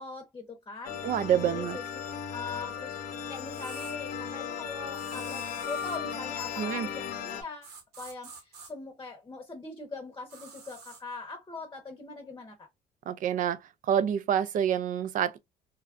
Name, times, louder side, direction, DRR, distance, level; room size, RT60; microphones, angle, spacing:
voice 1, 0.0-1.0 1.3-1.8 2.3-3.0 3.3-7.7 8.0-12.7, left 3 dB, 20° left, 0.8 m, -42 dB
sound 1, 0.8-7.4, left 8 dB, 75° left, 0.8 m, -36 dB
voice 2, 1.0-1.8 6.6-6.9 13.1-13.6 13.9-15.4, right 9 dB, 55° right, 0.4 m, -27 dB
sound 2, 3.5-4.0 5.0-6.0 7.6-8.7 10.3-11.0, right 5 dB, 85° right, 1.2 m, -48 dB
3.3 x 2.3 x 2.3 m
cardioid pair, 110°, 17 cm